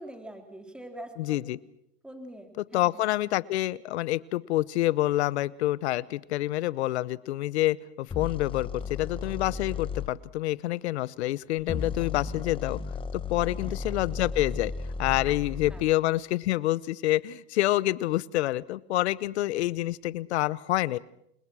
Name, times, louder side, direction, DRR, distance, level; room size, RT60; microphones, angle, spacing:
voice 1, 0.0-1.4 2.0-3.0 13.4-13.8 15.3-15.4 15.7-15.9, right 1 dB, 5° right, 5 dB, 3.3 m, -44 dB
voice 2, 1.2-1.6 2.7-12.8 13.3-14.7 15.0-21.0, left 16 dB, 85° left, 20 dB, 0.9 m, -27 dB
sound 1, 8.1-10.1 11.6-15.9, left 5 dB, 15° left, 1.3 m, -34 dB
29.0 x 21.0 x 6.2 m, 0.77 s
supercardioid pair, 120°, 32 cm